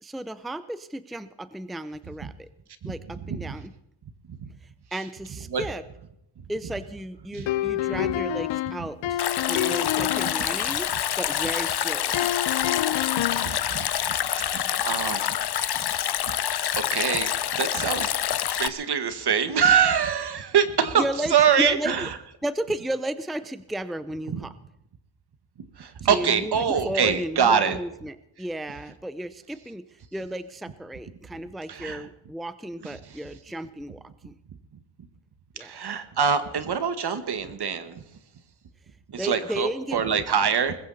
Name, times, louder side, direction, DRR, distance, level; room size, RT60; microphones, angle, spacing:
voice 1, 0.0-2.5 2.8-3.7 4.9-5.8 6.5-9.2 9.5-12.3 14.6-14.8 20.9-22.1 22.4-24.5 26.1-29.8 30.1-34.3 35.6-35.8 39.2-40.0, right 1 dB, ahead, 13 dB, 0.6 m, -33 dB
sound 1, 7.5-10.5 12.1-13.6, left 14 dB, 75° left, 0.5 m, -27 dB
Stream, 9.2-18.7, left 10 dB, 55° left, 0.9 m, -27 dB
voice 2, 13.3-13.8 14.4-15.4 16.2-16.3 16.7-18.1 18.6-21.1 21.3-22.1 24.3-24.4 25.8-27.8 31.7-32.0 35.6-38.0 39.1-40.8, right 7 dB, 55° right, 10 dB, 1.8 m, -24 dB
20.5 x 15.5 x 4.2 m, 0.80 s
cardioid pair, 115°, 46 cm